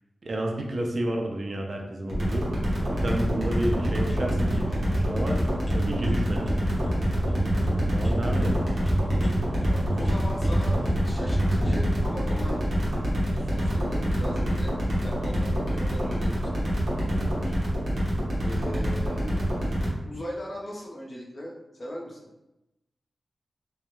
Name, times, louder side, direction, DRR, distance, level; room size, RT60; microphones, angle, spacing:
voice 1, 0.2-2.5 2.8-5.4 5.7-6.6 7.8-8.6 17.1-17.6, right 1 dB, 45° right, 1 dB, 0.4 m, -31 dB
sound 1, 2.1-19.9, equal, 65° right, 0.7 m, -27 dB
sound 2, 3.6-11.8, equal, 5° left, 0.8 m, -29 dB
voice 2, 9.7-12.6 13.3-16.7 18.4-19.8 20.0-22.3, equal, 35° left, -2 dB, 0.5 m, -39 dB
2.2 x 2.0 x 2.9 m, 0.92 s
wide cardioid pair, 130°, 0 cm